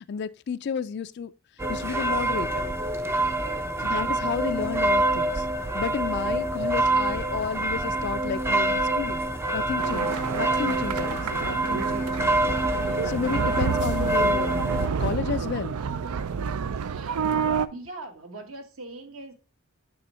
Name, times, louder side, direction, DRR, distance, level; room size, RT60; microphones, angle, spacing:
voice 1, 0.1-1.3 1.7-2.7 3.8-5.5 5.7-9.2 9.5-12.1 13.0-14.6 15.0-15.8, left 6 dB, 50° left, 0.3 m, -32 dB
sound 1, 1.6-14.9, right 2 dB, 10° right, 0.5 m, -26 dB
sound 2, 9.8-17.7, right 6 dB, 85° right, 0.4 m, -29 dB
voice 2, 16.7-17.2 17.7-19.3, right 2 dB, 65° right, 1.3 m, -41 dB
8.7 x 3.6 x 4.2 m
head